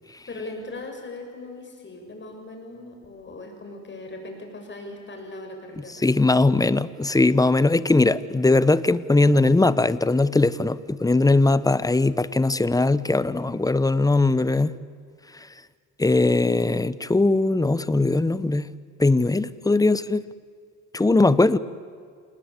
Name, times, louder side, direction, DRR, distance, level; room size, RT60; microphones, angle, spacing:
voice 1, 0.3-6.1, left 2 dB, 40° left, 3 dB, 6.7 m, -39 dB
voice 2, 6.0-14.7 16.0-18.7 19.0-20.2 20.9-21.6, left 2 dB, 10° left, 16 dB, 1.0 m, -20 dB
28.5 x 19.5 x 8.5 m, 2.1 s
cardioid pair, 90°, 30 cm